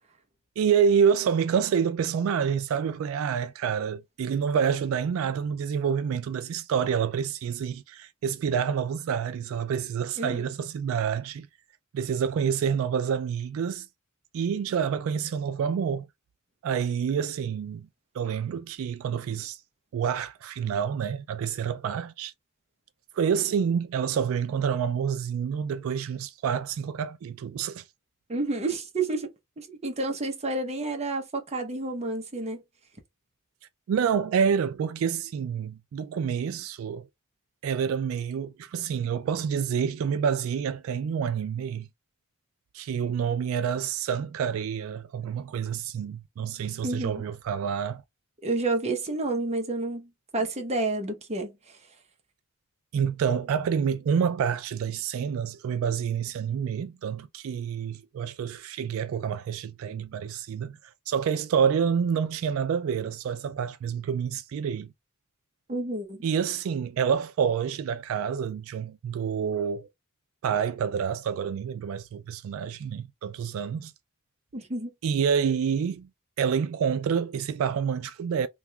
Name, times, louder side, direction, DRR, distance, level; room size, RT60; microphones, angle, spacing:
voice 1, 0.6-11.5 11.9-13.9 14.3-16.1 16.6-17.9 18.1-19.6 19.9-22.3 23.1-27.8 33.9-37.0 37.6-41.9 42.7-48.0 52.9-60.8 61.1-64.9 66.2-69.9 70.4-73.9 75.0-76.1 76.4-78.5, right 7 dB, 85° right, 0.3 m, -28 dB
voice 2, 28.3-29.3 29.6-32.6 46.8-47.2 48.4-50.1 50.3-51.6 65.7-66.2 74.5-74.9, right 2 dB, 30° right, 0.8 m, -30 dB
2.9 x 2.4 x 3.2 m
head